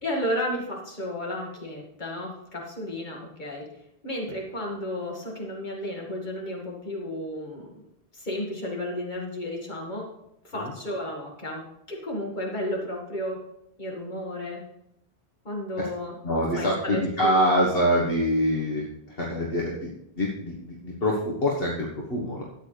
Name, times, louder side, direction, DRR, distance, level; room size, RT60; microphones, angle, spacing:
voice 1, 0.0-3.7 4.0-7.7 8.1-10.1 10.4-13.4 13.8-14.6 15.4-16.1 16.5-17.6, left 1 dB, 45° left, -1 dB, 2.3 m, -33 dB
voice 2, 16.2-19.9 20.2-22.4, equal, 65° left, -3 dB, 1.7 m, -25 dB
12.5 x 9.2 x 3.3 m, 0.78 s
omnidirectional pair, 1.1 m